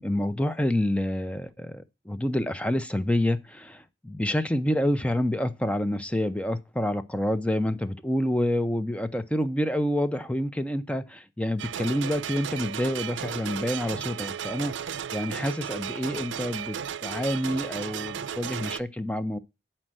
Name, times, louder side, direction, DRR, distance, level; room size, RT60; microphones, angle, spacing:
voice 1, 0.0-16.8 17.0-19.4, left 1 dB, 5° left, 0.7 m, -28 dB
sound 1, 11.6-18.8, right 8 dB, 90° right, 0.4 m, -34 dB
9.4 x 4.4 x 7.5 m
head